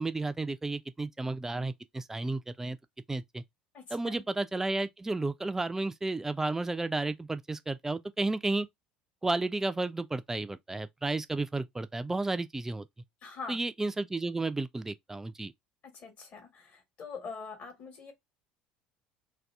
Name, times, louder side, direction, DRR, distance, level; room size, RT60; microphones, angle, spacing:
voice 1, 0.0-2.8 3.1-3.4 3.9-8.7 9.2-12.9 13.5-15.5, right 2 dB, 10° right, 0.3 m, -32 dB
voice 2, 3.7-4.2 13.2-13.6 15.8-18.1, left 4 dB, 40° left, 1.1 m, -44 dB
2.6 x 2.3 x 3.3 m
figure-of-eight pair, 65°, 4 cm